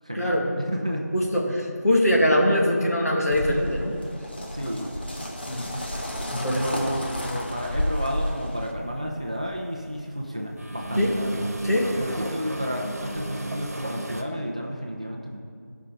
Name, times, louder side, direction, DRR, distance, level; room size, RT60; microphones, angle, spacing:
voice 1, 0.0-1.1 4.5-4.9 6.5-11.5 12.0-15.4, equal, 25° right, 0 dB, 0.5 m, -32 dB
voice 2, 1.1-4.0 4.6-4.7 5.5-5.7 6.3-6.7 7.2-7.3 11.0-11.1 11.6-11.9, left 1 dB, 60° left, -2 dB, 2.1 m, -23 dB
sound 1, 3.3-8.7, equal, 35° left, 0.9 m, -31 dB
sound 2, 7.8-8.1 8.6-9.9 10.3-14.2, right 1 dB, 60° right, 1.2 m, -32 dB
16.5 x 5.7 x 3.9 m, 2.3 s
figure-of-eight pair, 175°, 9 cm